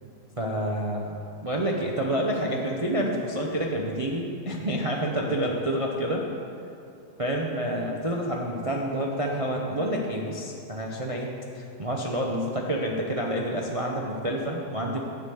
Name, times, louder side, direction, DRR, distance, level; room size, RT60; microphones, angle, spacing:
voice 1, 0.4-6.2 7.2-15.0, right 1 dB, 50° right, -1 dB, 0.3 m, -28 dB
10.5 x 5.1 x 8.0 m, 2.6 s
omnidirectional pair, 1.9 m